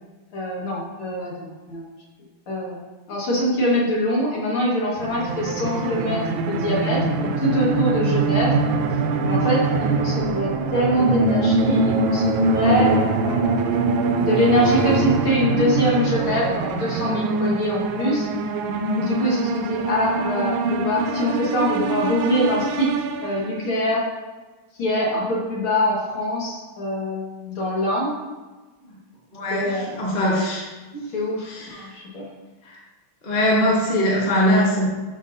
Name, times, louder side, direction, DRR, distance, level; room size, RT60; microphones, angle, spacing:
voice 1, 0.3-1.8 2.5-2.8 3.1-6.2 6.5-8.5 9.2-13.4 14.2-18.3 19.0-22.9 23.2-24.0 24.8-28.1 29.5-29.9 31.1-32.3, equal, 75° left, -5 dB, 2.7 m, -24 dB
sound 1, 5.0-23.7, right 3 dB, 75° right, 1.3 m, -23 dB
voice 2, 29.3-30.7 30.9-31.1 31.4-31.9 32.6-32.8 33.2-34.9, equal, 25° left, -4 dB, 1.3 m, -21 dB
12.5 x 4.3 x 2.7 m, 1.2 s
omnidirectional pair, 2.4 m